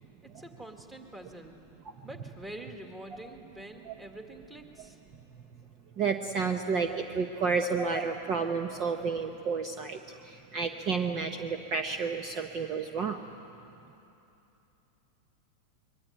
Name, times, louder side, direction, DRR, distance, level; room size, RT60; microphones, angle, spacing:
voice 1, 0.2-1.5 2.0-5.0, right 1 dB, 10° right, 3 dB, 2.0 m, -46 dB
voice 2, 6.0-13.2, right 5 dB, 30° right, 6 dB, 1.0 m, -31 dB
25.0 x 22.5 x 9.3 m, 2.9 s
supercardioid pair, 160°, 0 cm